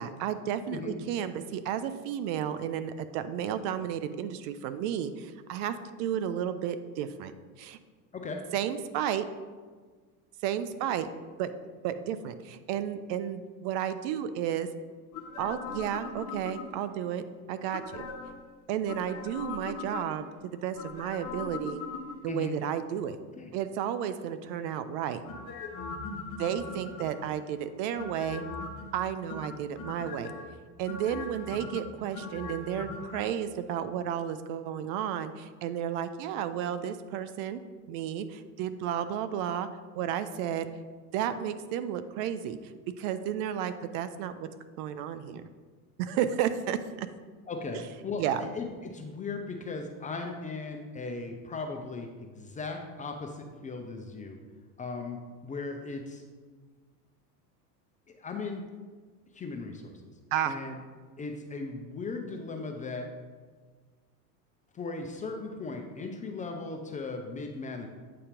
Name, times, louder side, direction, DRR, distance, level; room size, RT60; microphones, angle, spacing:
voice 1, 0.0-7.3 7.6-7.8 8.5-9.2 10.4-11.1 11.4-11.5 11.8-14.7 15.4-17.2 17.5-18.0 18.7-21.8 22.2-23.2 23.5-25.2 26.4-28.4 28.9-30.3 30.8-37.6 37.9-39.7 40.0-40.7 41.1-42.7 43.0-44.5 44.8-45.4 46.0-47.1 48.2-48.5 60.3-60.5, right 9 dB, 50° right, 11 dB, 0.5 m, -32 dB
voice 2, 0.7-1.0 8.1-8.4 22.3-22.5 23.3-23.5 47.5-54.4 54.8-56.2 58.1-58.6 59.3-60.1 60.5-60.8 61.2-63.1 64.7-67.9, left 3 dB, 15° left, 3 dB, 0.4 m, -37 dB
sound 1, 15.1-17.0 17.7-18.4 18.9-20.3 20.8-22.5 25.3-27.4 28.0-28.9 29.3-30.4 30.9-33.2 33.5-33.6, left 4 dB, 40° left, 1.1 m, -40 dB
8.4 x 2.8 x 5.1 m, 1.5 s
hypercardioid pair, 90°, 49 cm